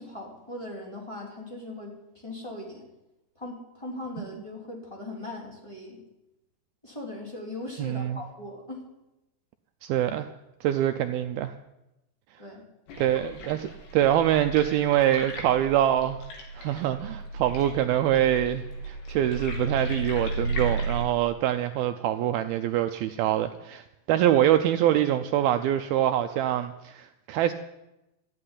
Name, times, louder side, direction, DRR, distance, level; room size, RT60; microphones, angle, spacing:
voice 1, 0.0-2.9 3.3-6.0 6.8-8.8 12.4-12.6, left 2 dB, 10° left, -2 dB, 2.6 m, -39 dB
voice 2, 7.8-8.2 9.8-10.3 10.6-11.5 13.0-16.2 16.6-27.5, right 11 dB, 80° right, 8 dB, 2.2 m, -25 dB
sound 1, 12.9-21.1, right 2 dB, 75° left, 4.9 m, -34 dB
13.5 x 8.8 x 10.0 m, 0.93 s
omnidirectional pair, 4.9 m